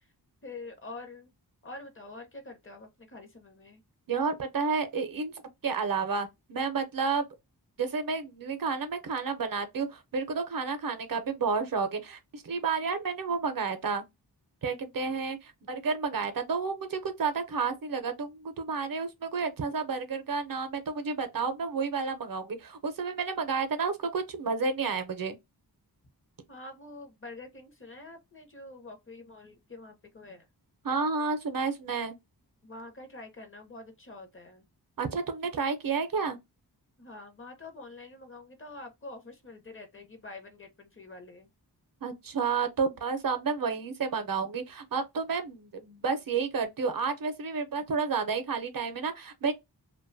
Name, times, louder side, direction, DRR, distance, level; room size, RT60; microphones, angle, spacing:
voice 1, 0.4-1.3 1.6-3.8 26.5-30.5 32.6-34.7 37.0-41.5, left 2 dB, 30° left, 0.7 m, -46 dB
voice 2, 4.1-5.3 5.6-7.2 7.8-14.0 14.6-25.4 30.8-32.1 35.0-36.4 42.0-49.5, right 5 dB, 55° right, 0.6 m, -31 dB
2.5 x 2.2 x 2.5 m
wide cardioid pair, 115°, 40 cm